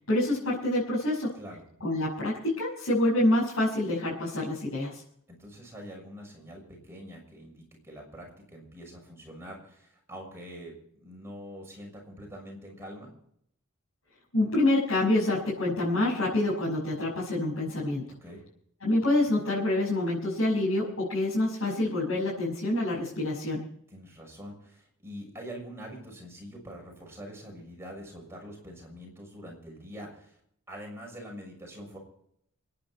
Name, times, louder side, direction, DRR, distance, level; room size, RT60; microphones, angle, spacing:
voice 1, 0.1-1.3 1.8-5.0 14.3-18.1 18.8-23.6, left 1 dB, 70° left, -7 dB, 6.1 m, -27 dB
voice 2, 5.3-13.1 18.2-18.4 23.9-30.4 30.7-32.0, equal, 10° right, 0 dB, 6.4 m, -44 dB
28.0 x 10.0 x 4.5 m, 0.69 s
head